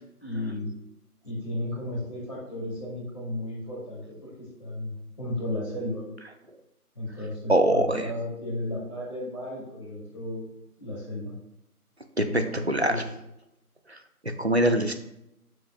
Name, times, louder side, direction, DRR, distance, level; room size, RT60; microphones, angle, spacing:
voice 1, 0.2-0.7 1.2-4.3 4.6-6.0 7.0-10.5 10.8-11.3 12.2-13.0, left 1 dB, 25° left, -10 dB, 2.5 m, -34 dB
voice 2, 7.5-8.1 12.2-13.0 13.9-14.0 14.2-14.9, right 1 dB, 45° right, 7 dB, 0.8 m, -23 dB
12.5 x 7.7 x 2.2 m, 0.84 s
figure-of-eight pair, 180°, 46 cm